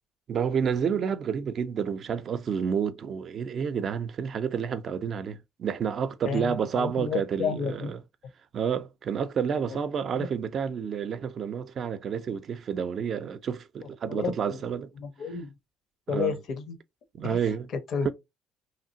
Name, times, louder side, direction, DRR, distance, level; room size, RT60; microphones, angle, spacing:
voice 1, 0.3-8.0 8.5-14.9 16.1-16.4 17.1-17.7 18.0-18.1, right 7 dB, 50° right, 0.4 m, -29 dB
voice 2, 6.2-7.9 9.7-9.8 10.1-10.3 14.1-14.6 15.0-15.5 16.1-16.8 17.2-17.4 17.7-18.1, left 6 dB, 55° left, 0.6 m, -31 dB
3.1 x 2.4 x 2.7 m
hypercardioid pair, 60°, 0 cm